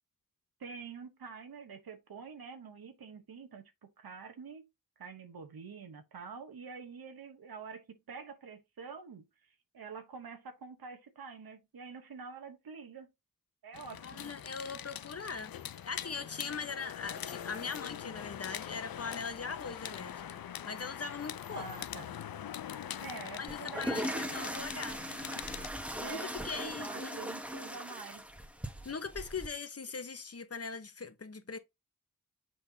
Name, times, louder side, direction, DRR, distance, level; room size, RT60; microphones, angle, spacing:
voice 1, 0.6-4.7 5.0-13.1 13.6-14.3 21.5-22.1 23.0-24.8 25.1-25.4 26.0-28.2, right 5 dB, 90° right, 1.1 m, -47 dB
sound 1, 13.7-25.7, left 10 dB, 75° left, 0.6 m, -43 dB
voice 2, 14.0-15.5 15.9-21.6 23.4-25.0 26.0-27.2 28.8-31.6, left 5 dB, 45° left, 1.1 m, -41 dB
sound 2, 23.5-29.5, equal, 5° right, 1.3 m, -39 dB
6.4 x 5.4 x 2.8 m
cardioid pair, 50°, 35 cm